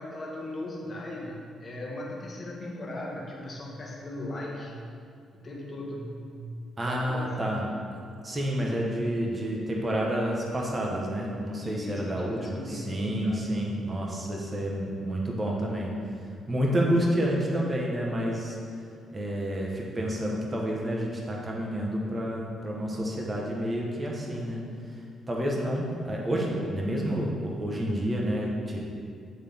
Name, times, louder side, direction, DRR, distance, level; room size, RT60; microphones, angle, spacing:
voice 1, 0.0-4.7 5.3-6.3 6.8-7.6 11.6-13.4, left 1 dB, 30° left, -4 dB, 1.2 m, -38 dB
voice 2, 6.8-7.6 8.2-15.9 16.5-18.6 19.1-24.6 25.3-28.9, equal, 25° right, -2 dB, 1.1 m, -29 dB
8.9 x 3.7 x 3.5 m, 2.3 s
cardioid pair, 90°, 0 cm